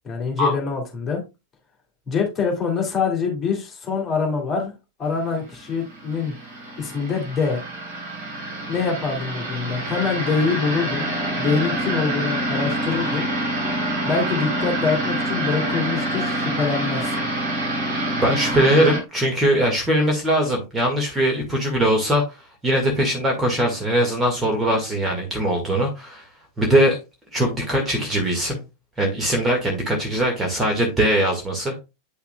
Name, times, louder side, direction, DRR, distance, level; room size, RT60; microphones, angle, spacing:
voice 1, 0.0-1.2 2.1-4.7 5.0-6.4 6.8-7.6 8.7-11.1 11.4-13.3 14.0-17.2, left 5 dB, 20° left, 2.6 m, -25 dB
sound 1, 5.5-19.0, right 1 dB, 50° right, 3.6 m, -26 dB
voice 2, 18.2-22.2 22.6-26.2 26.6-27.0 27.3-28.6 29.0-31.8, right 1 dB, 15° right, 1.8 m, -21 dB
8.6 x 5.7 x 2.3 m
figure-of-eight pair, 90°, 0 cm